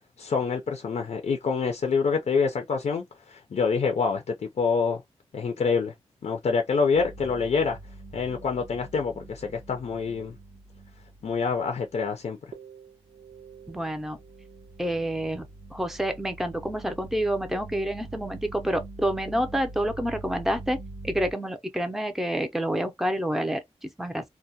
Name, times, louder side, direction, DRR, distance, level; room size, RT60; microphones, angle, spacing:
voice 1, 0.2-5.0 5.3-5.9 6.2-7.8 8.1-10.4 11.2-12.4, left 5 dB, 75° left, 0.5 m, -26 dB
sound 1, 6.9-12.1 12.5-21.3, right 3 dB, 75° right, 0.5 m, -44 dB
voice 2, 13.7-14.2 14.8-15.4 15.7-20.8 21.0-24.2, equal, 5° right, 0.5 m, -28 dB
2.2 x 2.1 x 2.6 m
wide cardioid pair, 80°, 12 cm